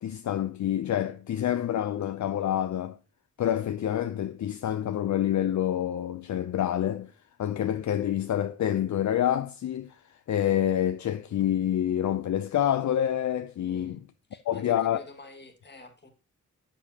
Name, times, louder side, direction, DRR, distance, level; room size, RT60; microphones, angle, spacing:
voice 1, 0.0-3.0 3.4-7.1 7.4-10.0 10.3-14.0 14.5-15.0, left 11 dB, 65° left, 0.5 m, -27 dB
voice 2, 13.7-14.0 14.3-16.1, left 2 dB, 35° left, 1.8 m, -49 dB
8.4 x 7.1 x 2.8 m
wide cardioid pair, 75°, 30 cm